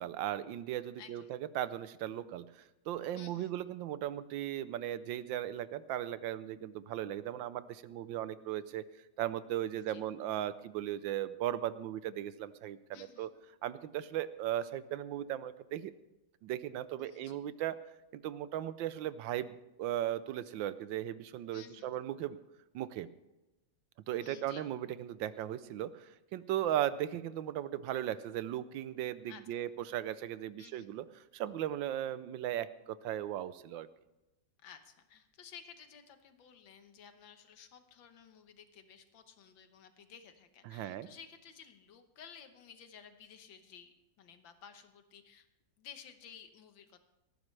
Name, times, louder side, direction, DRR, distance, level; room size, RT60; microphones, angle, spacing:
voice 1, 0.0-8.8 9.2-13.3 13.6-15.9 16.4-17.8 18.1-22.4 22.7-23.1 24.1-31.1 31.3-33.9 40.7-41.1, right 12 dB, 80° right, 15 dB, 1.3 m, -37 dB
voice 2, 1.0-1.3 3.1-3.6 9.8-10.0 12.9-13.3 17.0-17.4 21.5-22.0 24.2-24.6 29.3-29.6 30.6-30.9 34.6-45.5 45.8-47.0, left 7 dB, 80° left, 8 dB, 1.9 m, -55 dB
18.5 x 14.0 x 3.3 m, 1.0 s
omnidirectional pair, 2.0 m